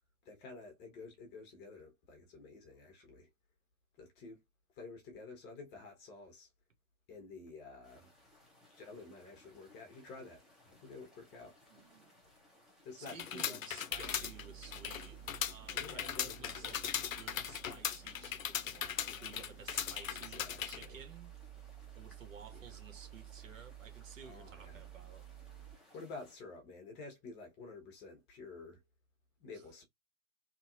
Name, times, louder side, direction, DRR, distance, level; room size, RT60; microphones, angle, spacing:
voice 1, 0.2-3.3 4.0-4.4 4.7-6.5 7.1-8.1 8.7-11.6 12.8-14.3 15.7-16.8 20.1-21.0 22.5-22.8 24.2-24.8 25.9-28.8 29.4-29.8, left 3 dB, 25° left, 1.1 m, -51 dB
sound 1, 7.8-26.4, left 1 dB, ahead, 0.7 m, -65 dB
voice 2, 11.7-12.1 13.0-21.4 21.9-25.3, right 6 dB, 65° right, 1.1 m, -54 dB
sound 2, 13.1-20.9, left 9 dB, 65° left, 0.6 m, -39 dB
sound 3, 13.9-25.8, right 12 dB, 25° right, 1.3 m, -53 dB
3.0 x 2.7 x 2.5 m
figure-of-eight pair, 110°, 43 cm